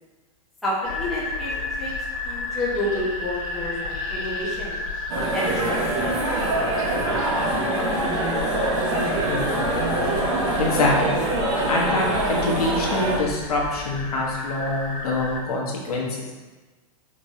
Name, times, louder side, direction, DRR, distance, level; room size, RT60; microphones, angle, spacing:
voice 1, 0.6-1.9 2.2-4.8 5.2-5.8, left 1 dB, ahead, -9 dB, 0.6 m, -29 dB
sound 1, 0.8-15.4, left 2 dB, 70° left, 1.4 m, -32 dB
sound 2, 5.1-13.2, right 2 dB, 50° right, 1.1 m, -24 dB
voice 2, 10.6-11.1 11.7-16.1, left 2 dB, 85° left, -2 dB, 1.2 m, -25 dB
5.2 x 3.1 x 2.7 m, 1.2 s
supercardioid pair, 175°, 19 cm